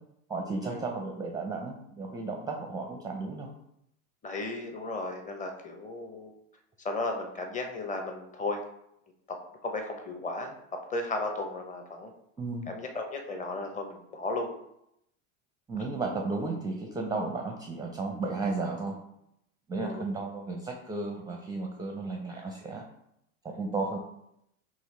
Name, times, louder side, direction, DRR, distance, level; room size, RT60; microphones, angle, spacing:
voice 1, 0.3-3.5 12.4-12.7 15.7-19.0 19.7-22.8 23.4-24.0, right 3 dB, 10° right, 1 dB, 0.5 m, -34 dB
voice 2, 4.2-6.3 6.8-8.6 9.3-9.4 9.6-10.5 10.9-12.1 12.7-14.5 19.8-20.1, left 2 dB, 20° left, 4 dB, 0.8 m, -35 dB
4.6 x 2.9 x 3.2 m, 0.79 s
hypercardioid pair, 90°, 42 cm